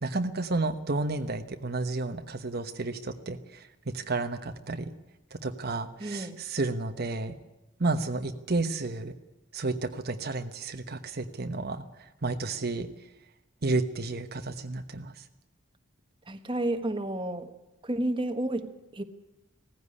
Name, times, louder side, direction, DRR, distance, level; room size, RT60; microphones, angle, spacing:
voice 1, 0.0-3.7 3.9-4.9 5.3-7.4 7.8-9.1 9.5-12.9 13.6-15.2, right 3 dB, 55° right, 1.1 m, -31 dB
voice 2, 6.0-6.4 16.3-17.5 17.8-19.0, right 1 dB, 25° right, 1.3 m, -31 dB
17.5 x 15.5 x 9.9 m
head